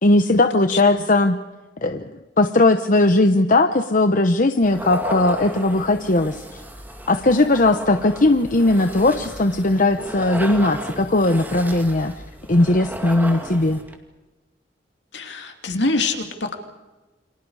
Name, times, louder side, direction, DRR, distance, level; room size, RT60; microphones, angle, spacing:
voice 1, 0.0-1.4 1.8-2.1 2.4-6.4 7.1-12.1 12.5-13.8, left 2 dB, 45° left, 7 dB, 1.0 m, -18 dB
voice 2, 0.5-1.0 15.1-16.5, left 3 dB, 65° left, 4 dB, 2.8 m, -25 dB
sound 1, 4.6-13.9, right 1 dB, 10° right, 2.3 m, -34 dB
29.5 x 25.5 x 4.9 m, 1.2 s
head